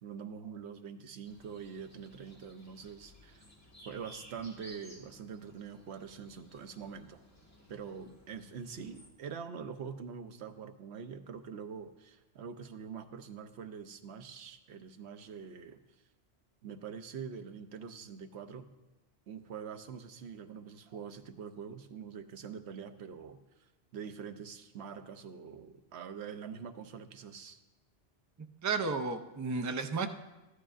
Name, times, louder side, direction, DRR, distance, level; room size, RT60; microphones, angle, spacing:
voice 1, 0.0-3.5 3.9-7.2 7.7-15.8 16.6-18.7 19.3-23.4 23.9-27.6, right 6 dB, 85° right, 8 dB, 0.9 m, -44 dB
sound 1, 1.2-9.1, equal, 15° left, 1.5 m, -57 dB
voice 2, 28.6-30.1, right 4 dB, 30° right, 7 dB, 0.3 m, -32 dB
13.5 x 11.5 x 2.5 m, 1.1 s
omnidirectional pair, 1.1 m